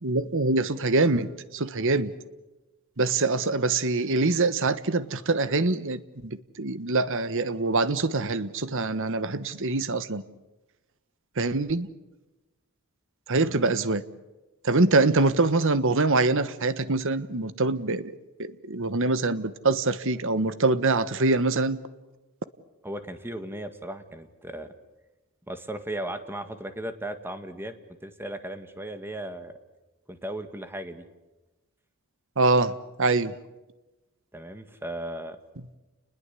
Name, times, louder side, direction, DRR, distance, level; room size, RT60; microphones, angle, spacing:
voice 1, 0.0-2.1 3.0-10.2 11.4-11.9 13.3-14.0 14.6-21.8 32.4-32.7 33.0-33.3, right 3 dB, 60° right, 14 dB, 1.3 m, -24 dB
voice 2, 22.8-24.7 25.5-27.8 28.0-29.5 30.1-31.1 34.3-35.4, right 1 dB, 10° right, 9 dB, 1.8 m, -36 dB
30.0 x 21.0 x 8.4 m, 1.1 s
head